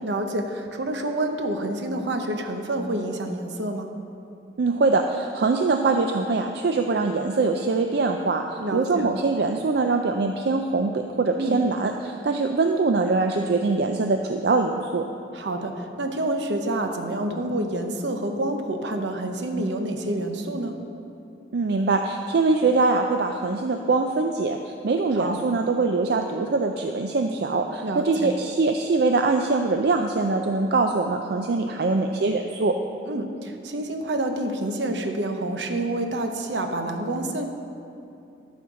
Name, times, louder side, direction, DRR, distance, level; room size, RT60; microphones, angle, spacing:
voice 1, 0.0-3.9 8.6-9.1 11.4-11.6 15.3-20.8 25.1-25.4 27.8-28.1 33.0-37.4, right 1 dB, 85° right, 5 dB, 0.8 m, -28 dB
voice 2, 4.6-15.0 21.5-32.8, right 3 dB, 65° right, 4 dB, 0.4 m, -23 dB
12.5 x 4.4 x 6.2 m, 2.7 s
head